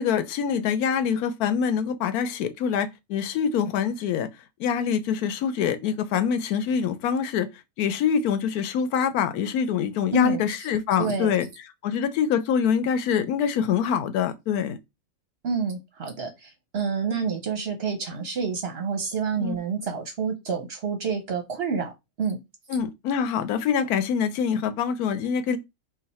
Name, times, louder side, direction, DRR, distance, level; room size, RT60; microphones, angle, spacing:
voice 1, 0.0-4.3 4.6-7.5 7.8-11.5 11.8-14.8 19.4-19.6 22.7-25.6, left 7 dB, 90° left, 1.1 m, -25 dB
voice 2, 10.1-10.5 11.0-11.3 15.4-21.9 22.2-22.4, right 5 dB, 55° right, 0.8 m, -28 dB
4.0 x 2.3 x 4.1 m
omnidirectional pair, 1.5 m